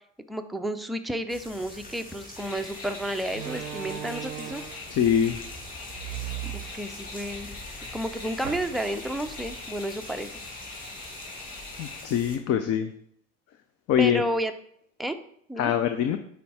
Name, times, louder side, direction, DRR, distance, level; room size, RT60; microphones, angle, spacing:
voice 1, 0.3-4.6 6.4-7.6 7.9-10.4 14.0-14.5 15.0-15.2 15.5-15.7, right 1 dB, ahead, 6 dB, 0.5 m, -31 dB
sound 1, 1.3-12.4, left 1 dB, 20° left, 2.2 m, -45 dB
Slam, 2.2-2.4 3.3-4.9 5.9-7.3 7.7-7.8 8.4-9.1, right 14 dB, 80° right, 0.6 m, -37 dB
sound 2, 2.4-12.0, left 3 dB, 65° left, 2.3 m, -42 dB
voice 2, 4.9-5.4 11.8-12.9 13.9-14.2 15.6-16.2, left 9 dB, 40° left, 8 dB, 0.6 m, -23 dB
8.3 x 3.6 x 4.2 m, 0.67 s
hypercardioid pair, 70°, 38 cm